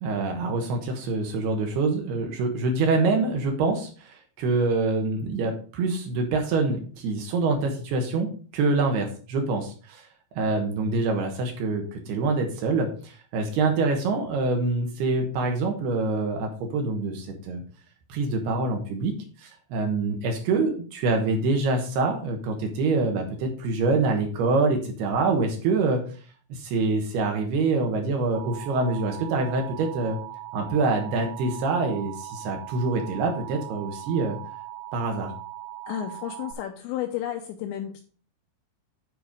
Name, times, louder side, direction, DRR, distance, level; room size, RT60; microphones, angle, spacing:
voice 1, 0.0-10.1 10.4-17.6 18.1-26.0 26.5-30.2 30.5-34.4 34.9-35.3, right 3 dB, 70° right, 3 dB, 2.6 m, -25 dB
Alarm, 28.3-36.5, right 13 dB, 85° right, 3.5 m, -40 dB
voice 2, 35.9-38.0, left 11 dB, 85° left, 5 dB, 2.6 m, -32 dB
9.6 x 4.5 x 5.0 m, 0.41 s
omnidirectional pair, 6.0 m